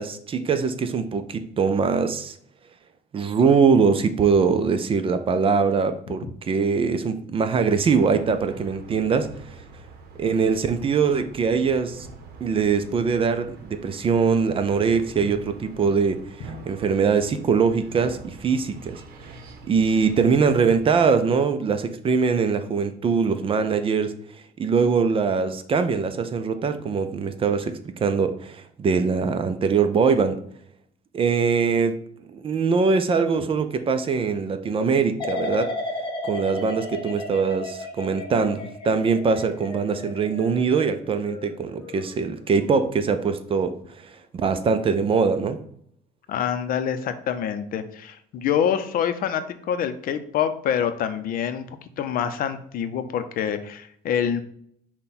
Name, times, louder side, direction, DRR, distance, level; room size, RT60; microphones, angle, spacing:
voice 1, 0.0-2.4 3.1-9.3 10.2-12.1 12.4-19.3 19.7-24.1 24.6-30.4 31.1-32.0 32.3-35.7 36.2-45.6, right 5 dB, 30° right, 9 dB, 0.4 m, -22 dB
sound 1, 7.5-21.1, right 3 dB, 65° right, 0.8 m, -44 dB
sound 2, 35.2-42.1 42.5-43.0, left 2 dB, 30° left, 1.0 m, -34 dB
voice 2, 46.3-54.4, left 8 dB, 55° left, 10 dB, 0.5 m, -26 dB
5.6 x 2.2 x 4.1 m, 0.65 s
cardioid pair, 120°, 17 cm